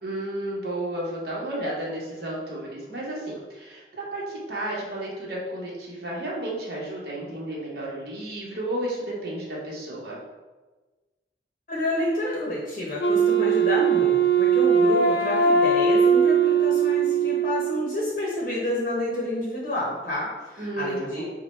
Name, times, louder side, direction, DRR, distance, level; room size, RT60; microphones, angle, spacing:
voice 1, 0.0-10.2 20.6-21.2, right 1 dB, 60° right, -4 dB, 1.1 m, -32 dB
voice 2, 11.7-21.2, left 1 dB, 45° left, -4 dB, 0.8 m, -29 dB
Wind instrument woodwind instrument, 13.0-18.0, right 5 dB, 70° left, 0.4 m, -20 dB
5.6 x 2.2 x 3.1 m, 1.2 s
head